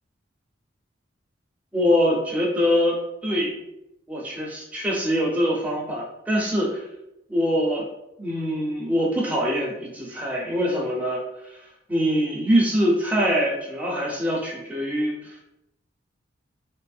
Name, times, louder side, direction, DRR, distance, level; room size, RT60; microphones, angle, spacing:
voice 1, 1.7-3.6 4.1-6.9 7.3-7.8 8.2-11.2 11.5-11.6 11.9-15.4, equal, 10° right, -4 dB, 0.5 m, -24 dB
3.3 x 2.0 x 2.3 m, 0.85 s
head